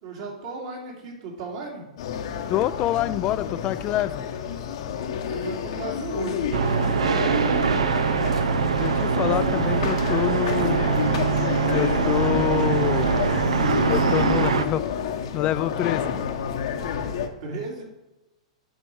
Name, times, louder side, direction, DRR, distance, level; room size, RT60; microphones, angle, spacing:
voice 1, 0.0-1.9 5.2-7.8 17.4-17.8, right 3 dB, 55° right, -2 dB, 3.1 m, -35 dB
sound 1, 2.0-17.3, left 8 dB, 60° left, 1.0 m, -30 dB
voice 2, 2.5-4.2 8.8-10.9 11.7-13.2 13.8-14.8 15.3-16.2, left 13 dB, 30° left, 15 dB, 0.4 m, -26 dB
sound 2, 6.5-14.7, right 5 dB, 75° right, 0.7 m, -23 dB
9.1 x 6.3 x 4.8 m, 0.99 s
figure-of-eight pair, 105°, 3 cm